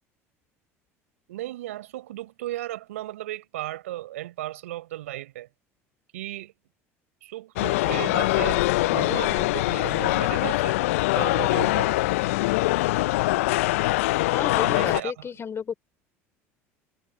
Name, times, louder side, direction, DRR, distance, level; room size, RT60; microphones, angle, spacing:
voice 1, 1.3-5.5 6.1-6.5 7.2-10.8 11.1-12.0 14.6-15.1, right 15 dB, 80° right, 4.5 m, -35 dB
sound 1, 7.6-15.0, left 20 dB, 75° left, 0.4 m, -23 dB
voice 2, 14.3-15.7, left 7 dB, 35° left, 3.2 m, -31 dB
hypercardioid pair, 70°, 8 cm